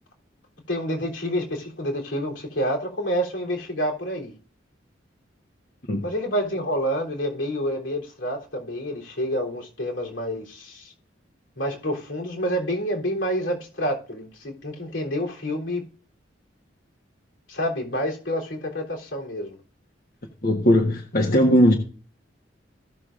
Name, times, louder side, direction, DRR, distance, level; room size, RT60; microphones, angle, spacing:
voice 1, 0.7-4.3 6.0-10.9 11.6-15.9 17.5-19.6, equal, 85° left, 3.5 m, -28 dB
voice 2, 20.4-21.7, equal, 50° left, 1.4 m, -18 dB
16.5 x 6.6 x 2.6 m
head